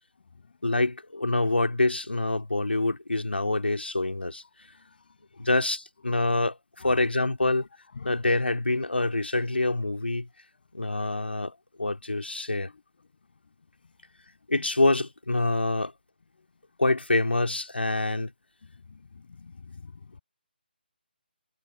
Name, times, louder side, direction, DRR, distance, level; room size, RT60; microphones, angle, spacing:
voice 1, 0.6-4.4 5.4-6.6 6.8-7.7 8.0-10.3 10.7-11.5 11.8-12.7 14.5-15.9 16.8-18.3, left 2 dB, 85° left, 3.1 m, -26 dB
voice 2, 4.7-5.5 6.8-7.0 7.6-7.7 7.9-8.2 10.5-10.6 12.6-12.8 13.8-13.9 15.8-15.9 16.4-16.5 18.6-20.2, left 5 dB, 60° left, 7.8 m, -48 dB
figure-of-eight pair, 150°, 6 cm